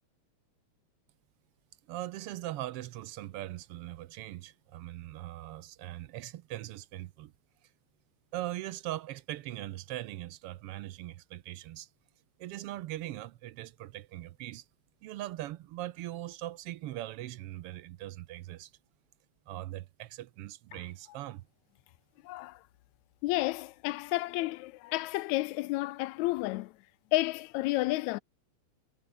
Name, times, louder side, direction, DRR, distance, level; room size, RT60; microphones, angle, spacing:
voice 1, 1.9-7.3 8.3-11.9 12.4-14.6 15.0-18.7 19.5-21.5, right 15 dB, 75° right, 1.3 m, -40 dB
voice 2, 22.2-22.6 23.2-26.7 27.1-28.2, left 19 dB, 80° left, 1.8 m, -31 dB
omnidirectional pair, 3.4 m